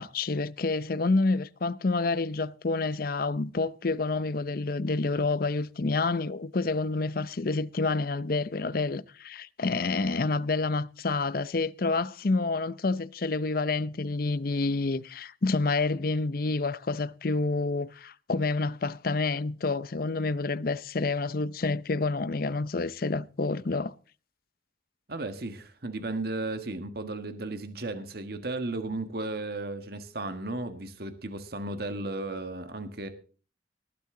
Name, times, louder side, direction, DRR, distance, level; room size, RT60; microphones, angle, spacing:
voice 1, 0.0-23.9, left 3 dB, 55° left, 0.6 m, -28 dB
voice 2, 25.1-33.1, right 2 dB, 55° right, 1.6 m, -35 dB
19.5 x 11.0 x 3.8 m
head